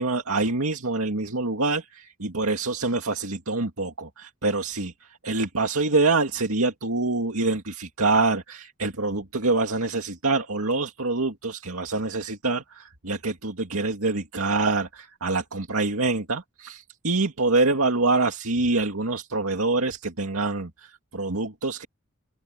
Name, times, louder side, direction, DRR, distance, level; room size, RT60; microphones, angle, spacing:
voice 1, 0.0-21.9, right 3 dB, 80° right, 2.2 m, -25 dB
head